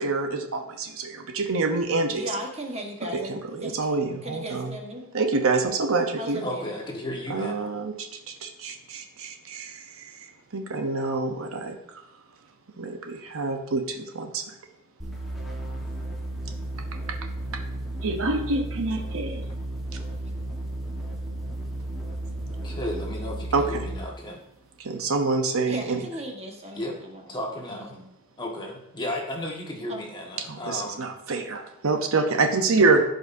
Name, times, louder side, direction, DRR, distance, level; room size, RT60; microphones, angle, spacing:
voice 1, 0.0-2.3 3.1-4.7 5.1-6.4 7.3-10.3 10.5-12.0 12.8-14.4 18.0-19.4 23.5-23.9 24.8-26.0 30.5-33.0, right 3 dB, 65° right, 5 dB, 0.8 m, -26 dB
voice 2, 2.1-3.3 3.6-3.9 4.2-5.1 6.2-6.8 25.7-27.3 27.9-28.1 28.4-28.5 29.9-30.0, equal, 30° right, 1 dB, 1.4 m, -37 dB
voice 3, 6.4-7.7 22.6-24.4 26.7-27.0 27.3-27.9 28.4-31.1, left 1 dB, 20° left, -1 dB, 1.5 m, -34 dB
sound 1, 15.0-24.1, right 1 dB, ahead, 1.3 m, -33 dB
15.5 x 5.3 x 2.7 m, 0.80 s
head